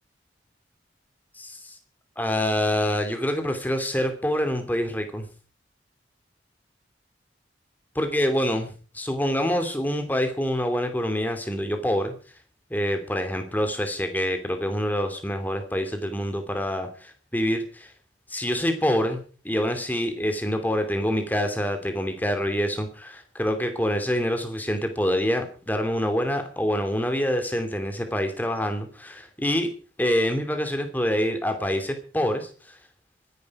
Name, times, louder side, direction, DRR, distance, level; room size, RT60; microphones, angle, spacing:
voice 1, 1.4-1.8 2.2-5.3 7.9-12.1 12.7-17.9 18.3-29.7 30.0-32.8, equal, 10° left, 6 dB, 2.7 m, -26 dB
24.5 x 11.0 x 4.9 m, 0.40 s
head